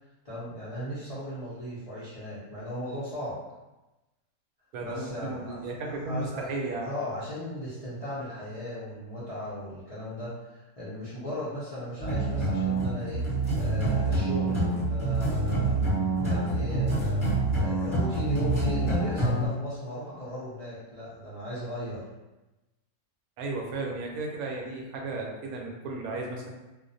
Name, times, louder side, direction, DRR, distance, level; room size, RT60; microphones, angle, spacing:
voice 1, 0.2-3.4 4.8-6.4 6.8-22.1, equal, 65° left, -11 dB, 0.3 m, -37 dB
voice 2, 4.7-6.9 23.4-26.5, right 3 dB, 80° right, 0 dB, 1.0 m, -34 dB
sound 1, 12.0-19.5, right 2 dB, 25° left, 0.8 m, -26 dB
2.4 x 2.1 x 2.5 m, 1.1 s
omnidirectional pair, 1.6 m